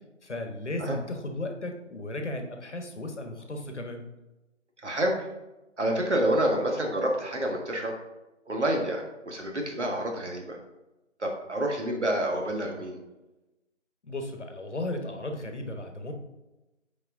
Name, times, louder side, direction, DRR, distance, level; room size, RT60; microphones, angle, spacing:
voice 1, 0.2-4.0 14.1-16.1, left 1 dB, 65° left, 4 dB, 1.2 m, -35 dB
voice 2, 4.8-5.2 5.8-7.9 8.5-10.6 11.2-13.0, right 1 dB, 60° right, 2 dB, 1.6 m, -28 dB
7.8 x 4.6 x 3.7 m, 1.0 s
figure-of-eight pair, 165°, 38 cm